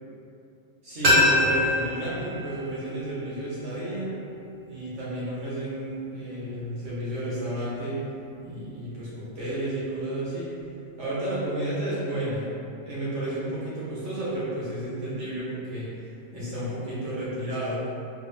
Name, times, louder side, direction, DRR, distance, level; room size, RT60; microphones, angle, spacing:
voice 1, 0.8-4.1 4.7-8.0 8.4-10.5 11.0-12.5 12.8-17.8, right 1 dB, 70° right, -9 dB, 1.5 m, -32 dB
sound 1, 1.0-3.8 4.1-4.2, left 1 dB, 45° right, 1.0 m, -25 dB
3.5 x 2.6 x 3.4 m, 2.7 s
omnidirectional pair, 1.3 m